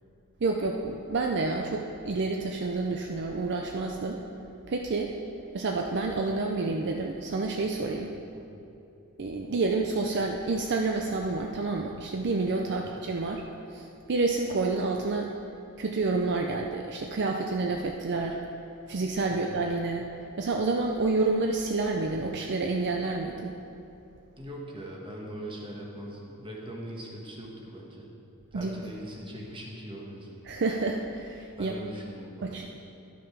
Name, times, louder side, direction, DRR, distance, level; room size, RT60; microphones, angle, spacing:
voice 1, 0.4-4.2 4.7-5.1 5.5-8.1 9.2-13.4 13.7-15.3 15.8-18.4 18.9-20.1 20.4-23.5 28.5-28.8 30.5-31.7 32.4-32.7, right 3 dB, 50° right, 2 dB, 0.5 m, -29 dB
voice 2, 24.4-28.1 28.5-30.4 31.5-32.7, right 1 dB, 25° right, -2 dB, 1.3 m, -41 dB
11.5 x 6.1 x 4.7 m, 2.8 s
head